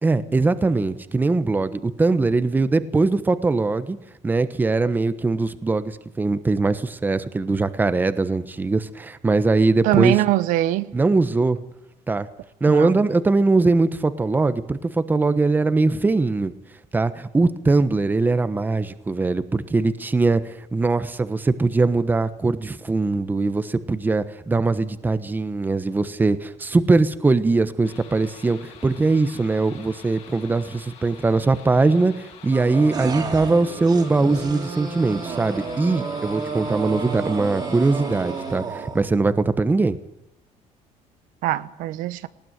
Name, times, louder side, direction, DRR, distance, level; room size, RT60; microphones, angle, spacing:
voice 1, 0.0-4.0 4.2-10.2 10.9-11.6 12.1-12.3 12.6-16.5 16.9-40.0, right 3 dB, 15° right, 1.1 m, -21 dB
voice 2, 9.8-10.9 12.7-12.9 41.4-42.3, right 15 dB, 85° right, 1.0 m, -22 dB
sound 1, 27.8-38.6, left 7 dB, 55° left, 6.1 m, -46 dB
sound 2, 32.5-39.1, right 5 dB, 30° right, 3.0 m, -31 dB
19.0 x 19.0 x 9.2 m
cardioid pair, 150°, 13 cm